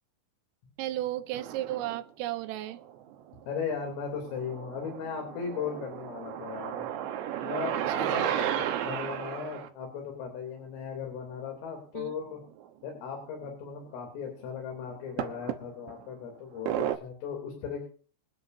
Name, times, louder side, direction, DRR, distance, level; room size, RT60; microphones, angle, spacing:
voice 1, 0.8-2.8 7.9-8.5 12.0-12.2, right 14 dB, 85° right, 3.5 m, -35 dB
sound 1, 1.3-2.0 2.7-3.6 4.0-9.7 12.1-12.2 12.5-12.7 13.5-13.6 15.2-16.0 16.7-17.0, right 10 dB, 70° right, 3.2 m, -33 dB
voice 2, 3.5-6.9 7.4-12.4 12.8-17.9, left 6 dB, 85° left, 5.8 m, -37 dB
26.0 x 10.0 x 2.7 m
omnidirectional pair, 5.7 m